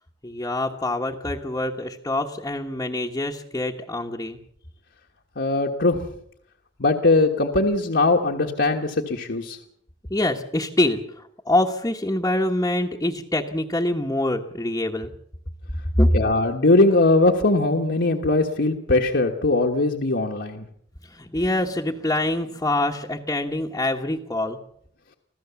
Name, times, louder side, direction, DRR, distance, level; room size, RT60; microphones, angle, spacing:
voice 1, 0.2-4.4 10.1-15.1 16.0-16.1 21.0-24.6, left 1 dB, 15° left, -1 dB, 1.2 m, -25 dB
voice 2, 5.4-6.1 6.8-9.6 16.1-20.6, left 2 dB, 65° left, 1 dB, 1.5 m, -20 dB
25.5 x 15.5 x 7.1 m, 0.70 s
head